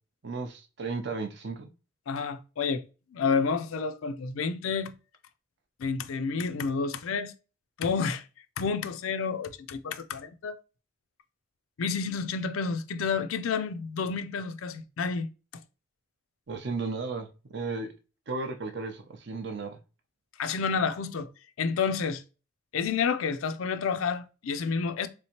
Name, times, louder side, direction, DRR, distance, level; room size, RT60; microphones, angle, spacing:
voice 1, 0.2-1.7 16.5-17.9 18.3-19.8, right 3 dB, 55° right, 0.6 m, -34 dB
voice 2, 2.1-2.8 3.1-4.9 5.8-7.3 7.8-8.2 8.6-10.5 11.8-15.3 20.4-21.3 21.6-22.2 22.7-25.1, left 5 dB, 75° left, 0.4 m, -29 dB
3.5 x 2.9 x 2.8 m
head